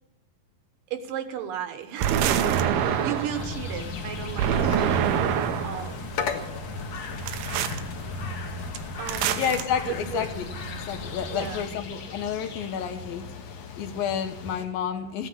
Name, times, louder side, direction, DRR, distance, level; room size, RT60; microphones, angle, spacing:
voice 1, 0.9-6.1 6.9-7.0 9.0-9.5 9.8-10.3 11.3-11.7, right 9 dB, 75° right, 9 dB, 2.6 m, -35 dB
sound 1, 2.0-3.5 4.4-5.9 7.3-7.8 9.1-9.6, right 9 dB, 90° right, 2.9 m, -25 dB
sound 2, 2.2-14.6, left 4 dB, 60° left, 2.1 m, -38 dB
sound 3, 3.3-11.7, left 1 dB, 40° left, 1.9 m, -38 dB
voice 2, 9.3-15.3, left 8 dB, 75° left, 7 dB, 2.9 m, -30 dB
15.5 x 9.8 x 8.5 m, 0.89 s
omnidirectional pair, 4.2 m